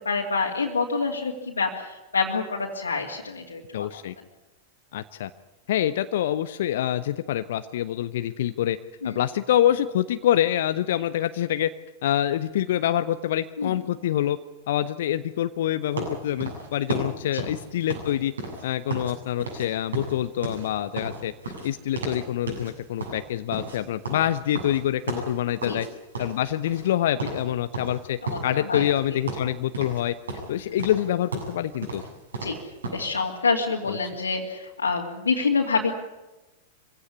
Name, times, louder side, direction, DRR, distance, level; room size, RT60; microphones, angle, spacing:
voice 1, 0.0-3.6 9.0-9.1 13.6-13.8 17.3-17.5 25.6-25.8 28.2-28.9 32.4-32.6 32.9-35.9, left 4 dB, 80° left, -2 dB, 2.6 m, -27 dB
voice 2, 3.7-4.1 4.9-5.3 5.7-8.8 9.0-11.7 12.0-14.4 14.7-18.3 18.6-21.3 21.6-25.9 26.2-30.1 30.5-32.0 33.9-34.0, left 11 dB, 60° left, 12 dB, 0.8 m, -26 dB
sound 1, 16.0-19.1 19.4-19.7 19.9-22.2 22.5-22.7 23.0-25.9 26.1-26.9 27.2-27.4 27.7-29.0 29.3-30.0 30.3-33.1, right 3 dB, 75° right, 7.9 m, -33 dB
25.0 x 16.5 x 9.8 m, 1.0 s
figure-of-eight pair, 95°, 0 cm